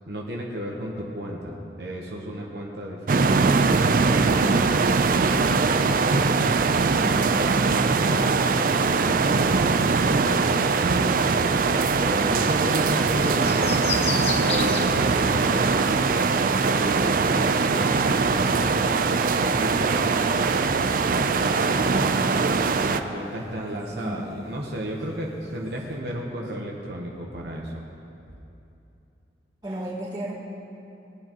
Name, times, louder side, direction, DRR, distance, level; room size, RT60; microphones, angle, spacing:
voice 1, 0.1-6.2 7.0-11.4 11.9-13.9 14.4-16.2 16.6-19.0 19.4-21.5 22.8-27.9, equal, 65° right, -2 dB, 1.1 m, -33 dB
sound 1, 3.1-23.0, right 4 dB, 50° right, 0.4 m, -21 dB
sound 2, 12.2-26.0, left 4 dB, 35° left, 0.9 m, -39 dB
voice 2, 21.6-22.5 23.4-24.3 25.1-25.5 26.1-26.4 29.6-30.3, right 1 dB, 25° right, -7 dB, 1.9 m, -36 dB
19.0 x 9.7 x 3.0 m, 2.8 s
head